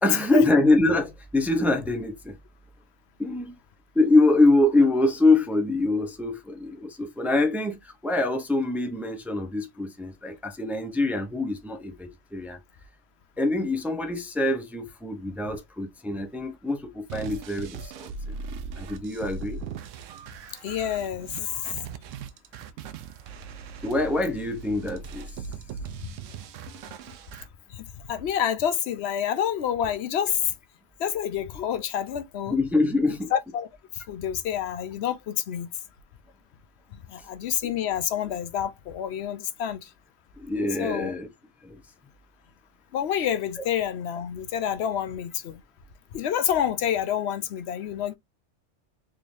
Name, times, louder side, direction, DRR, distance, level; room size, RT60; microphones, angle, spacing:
voice 1, 0.0-2.4 3.2-3.6 3.9-12.6 13.4-18.4 18.8-19.6 23.8-25.3 32.5-33.3 37.6-37.7 40.4-41.3 41.6-41.8, left 2 dB, ahead, 0.4 m, -24 dB
sound 1, 17.1-27.5, right 5 dB, 85° right, 0.9 m, -39 dB
voice 2, 20.6-21.3 27.7-30.4 31.0-32.6 33.3-33.7 33.9-35.7 37.1-39.9 40.8-41.1 42.9-45.6 46.1-48.2, left 9 dB, 65° left, 0.8 m, -28 dB
3.6 x 3.2 x 2.6 m
omnidirectional pair, 1.3 m